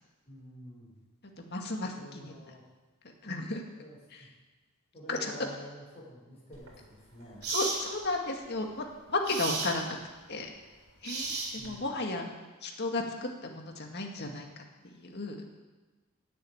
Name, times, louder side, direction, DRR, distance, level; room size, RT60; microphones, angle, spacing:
voice 1, 0.2-1.0 1.8-2.6 3.8-4.3 4.9-7.4 11.6-11.9, equal, 30° left, -6 dB, 6.0 m, -49 dB
voice 2, 1.4-2.3 3.2-3.6 4.1-4.3 5.1-5.3 7.5-10.0 10.3-10.5 11.0-12.3 12.6-15.4, left 2 dB, 50° left, 2 dB, 2.1 m, -34 dB
sound 1, 6.5-6.7 7.4-7.8 9.2-9.8 11.0-11.8, right 4 dB, 90° right, 3.8 m, -33 dB
17.0 x 8.0 x 8.7 m, 1.2 s
head